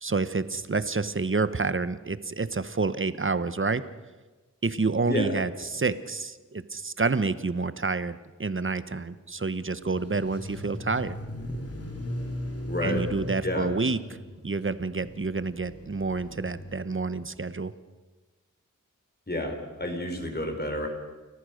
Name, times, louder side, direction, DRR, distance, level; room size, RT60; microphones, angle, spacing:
voice 1, 0.0-3.8 4.6-11.2 12.8-14.0 14.4-17.7, right 4 dB, 40° right, 14 dB, 1.1 m, -28 dB
sound 1, 9.8-16.9, left 1 dB, 50° left, 3.5 m, -38 dB
voice 2, 12.7-13.1 13.4-13.7 19.3-20.9, left 1 dB, 30° left, 3 dB, 4.8 m, -30 dB
30.0 x 14.5 x 6.5 m, 1.3 s
wide cardioid pair, 50°, 32 cm